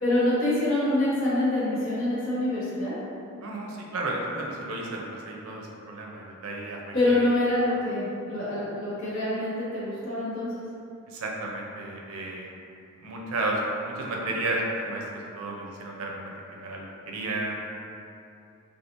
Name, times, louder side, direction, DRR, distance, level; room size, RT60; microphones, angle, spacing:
voice 1, 0.0-3.0 6.9-10.5, left 1 dB, 65° left, -9 dB, 0.9 m, -25 dB
voice 2, 3.4-7.3 11.1-12.5 13.0-17.5, right 2 dB, 80° right, -1 dB, 0.4 m, -33 dB
2.9 x 2.3 x 2.5 m, 2.6 s
head